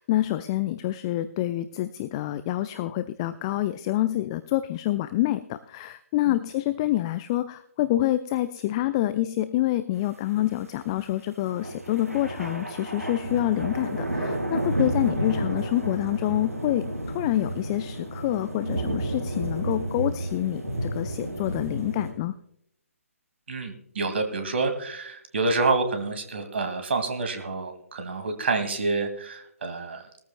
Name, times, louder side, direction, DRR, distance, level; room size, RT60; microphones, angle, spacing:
voice 1, 0.0-16.9 17.1-22.3, left 14 dB, 20° left, 13 dB, 0.4 m, -27 dB
sound 1, 11.6-22.1, right 1 dB, 70° right, 6.7 m, -31 dB
voice 2, 23.5-30.0, right 3 dB, 50° right, 7 dB, 2.0 m, -28 dB
20.0 x 14.0 x 2.2 m, 0.70 s
figure-of-eight pair, 135°, 8 cm